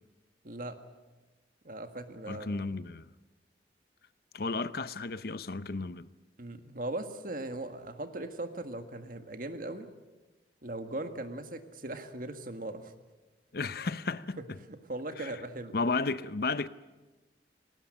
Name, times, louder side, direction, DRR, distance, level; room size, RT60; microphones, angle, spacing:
voice 1, 0.4-0.8 1.6-2.5 6.4-9.9 10.6-12.9 14.4-14.5 14.9-15.7, right 2 dB, 50° right, 1.7 m, -39 dB
voice 2, 2.3-3.1 4.3-6.1 13.5-14.6 15.2-15.4 15.7-16.7, left 3 dB, 55° left, 0.7 m, -33 dB
19.0 x 19.0 x 9.9 m
head